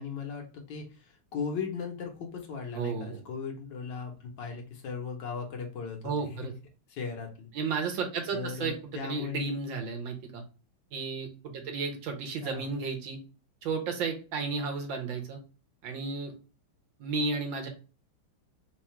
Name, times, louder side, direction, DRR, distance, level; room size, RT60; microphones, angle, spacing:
voice 1, 0.0-6.5 6.9-7.5 8.3-9.5 12.4-12.7, left 5 dB, 65° left, 2 dB, 1.5 m, -37 dB
voice 2, 2.7-3.2 6.0-6.5 7.5-8.8 9.0-10.4 10.9-13.2 13.6-15.4 15.8-16.3 17.0-17.7, right 4 dB, 70° right, 4 dB, 1.5 m, -33 dB
3.8 x 2.4 x 4.2 m, 0.34 s
omnidirectional pair, 2.2 m